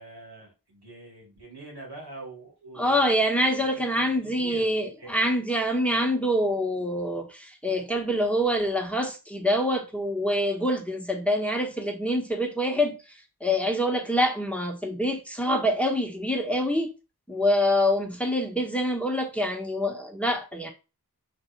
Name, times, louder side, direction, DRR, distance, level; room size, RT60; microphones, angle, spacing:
voice 1, 0.0-3.1 3.7-5.3, right 2 dB, 90° right, 2.7 m, -45 dB
voice 2, 2.8-13.0 13.4-16.9 17.3-20.7, equal, 5° left, 1.5 m, -25 dB
5.3 x 4.1 x 4.6 m
wide cardioid pair, 45°, 38 cm